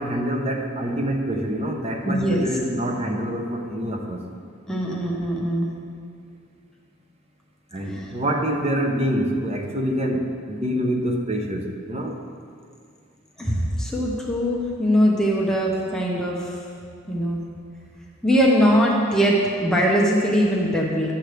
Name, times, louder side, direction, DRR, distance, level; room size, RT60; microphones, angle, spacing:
voice 1, 0.0-4.2 7.7-12.2, equal, 30° right, 2 dB, 0.9 m, -26 dB
voice 2, 2.0-2.5 4.7-5.7 7.9-8.0 13.4-16.6 17.1-17.4 18.2-21.2, equal, 5° left, -4 dB, 0.9 m, -21 dB
12.0 x 8.0 x 3.3 m, 2.2 s
head